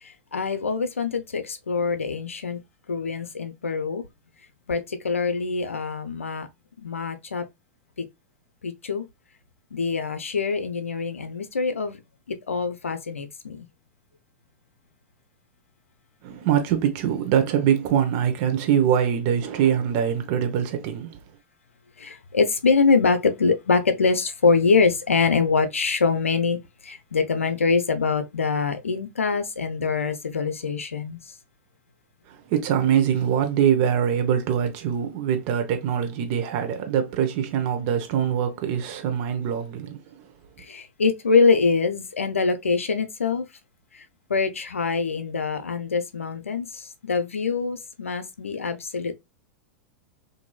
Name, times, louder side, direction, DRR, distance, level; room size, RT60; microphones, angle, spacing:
voice 1, 0.0-2.6 2.9-4.0 4.7-6.5 6.8-7.4 8.6-9.1 9.7-12.0 12.3-13.7 22.0-26.6 26.8-31.2 40.6-43.5 43.9-44.0 44.3-49.1, left 4 dB, 85° left, 0.5 m, -24 dB
voice 2, 16.2-21.2 32.3-40.2, right 9 dB, 50° right, 0.8 m, -23 dB
3.0 x 2.6 x 2.2 m
figure-of-eight pair, 90°, 7 cm